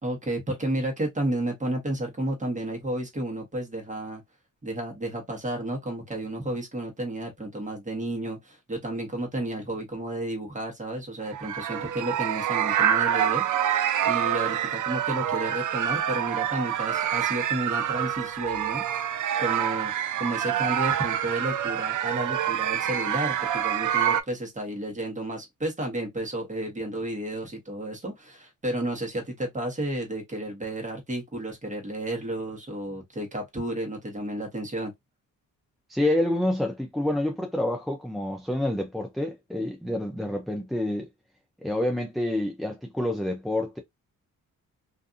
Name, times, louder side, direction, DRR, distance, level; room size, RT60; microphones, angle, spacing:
voice 1, 0.0-4.2 4.6-13.4 14.0-19.0 19.4-19.9 20.2-34.9, right 1 dB, 20° right, 1.2 m, -32 dB
sound 1, 11.3-24.2, right 10 dB, 60° right, 0.4 m, -26 dB
voice 2, 35.9-41.1 41.6-43.8, left 1 dB, ahead, 0.4 m, -28 dB
2.5 x 2.4 x 2.6 m
cardioid pair, 115°, 35 cm